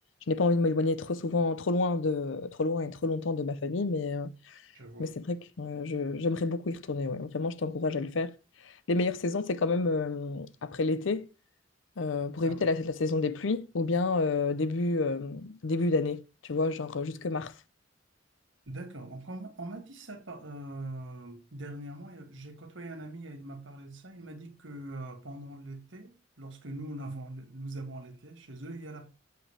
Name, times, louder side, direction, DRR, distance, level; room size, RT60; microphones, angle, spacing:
voice 1, 0.3-4.5 5.0-8.3 8.9-11.3 12.0-17.5, left 3 dB, 85° left, 0.6 m, -29 dB
voice 2, 4.7-5.1 12.4-12.7 18.7-29.1, right 2 dB, 75° right, 1.8 m, -42 dB
7.6 x 7.1 x 3.3 m
head